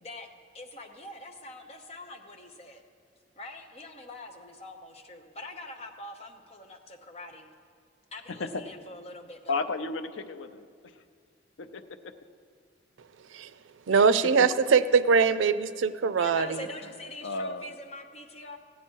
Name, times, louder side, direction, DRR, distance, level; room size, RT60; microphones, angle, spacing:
voice 1, 0.5-2.8 3.4-7.5 8.1-9.6 16.2-18.6, left 1 dB, 35° left, 3 dB, 0.8 m, -44 dB
voice 2, 9.5-10.6 11.6-11.8 13.9-14.1 17.2-17.7, left 3 dB, 85° left, 9 dB, 0.6 m, -33 dB
voice 3, 13.9-16.6, right 5 dB, 90° right, 14 dB, 0.4 m, -22 dB
15.5 x 9.4 x 4.6 m, 2.1 s
head